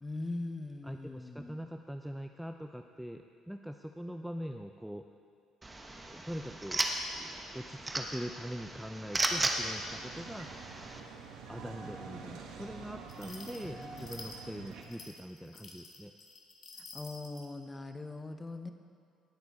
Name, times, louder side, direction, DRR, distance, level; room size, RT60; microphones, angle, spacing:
voice 1, 0.0-1.6 13.6-14.3 16.9-18.7, left 2 dB, 15° left, 7 dB, 0.8 m, -41 dB
voice 2, 0.8-5.1 6.0-6.8 7.1-10.5 11.5-16.1, equal, ahead, 6 dB, 0.4 m, -43 dB
sound 1, 5.6-11.0, right 2 dB, 20° right, 1.0 m, -36 dB
sound 2, 9.2-14.8, right 5 dB, 80° right, 1.3 m, -47 dB
sound 3, 13.1-17.5, left 3 dB, 40° left, 1.6 m, -50 dB
18.5 x 6.7 x 4.2 m, 2.3 s
cardioid pair, 100°, 0 cm